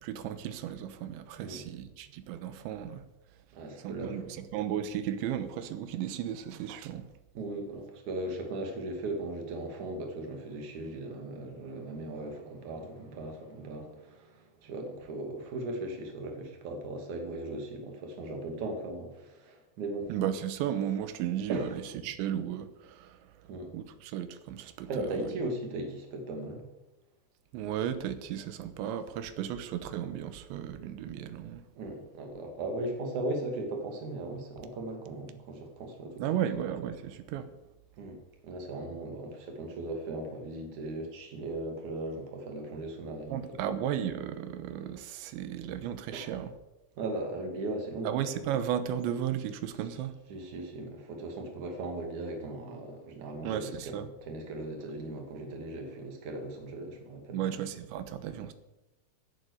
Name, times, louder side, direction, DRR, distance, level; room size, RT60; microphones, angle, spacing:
voice 1, 0.0-3.0 3.8-7.0 20.1-21.7 22.0-23.2 23.7-25.2 27.5-31.6 36.2-37.5 43.3-46.5 48.0-50.1 53.4-54.1 57.3-58.5, right 10 dB, 90° right, 11 dB, 3.3 m, -34 dB
voice 2, 3.5-4.4 7.3-20.1 21.5-21.8 23.4-23.7 24.8-26.6 31.8-36.2 38.0-43.6 46.1-46.4 47.0-48.1 50.3-57.6, right 2 dB, 50° right, 3 dB, 3.5 m, -38 dB
16.5 x 11.0 x 6.6 m, 1.0 s
omnidirectional pair, 5.1 m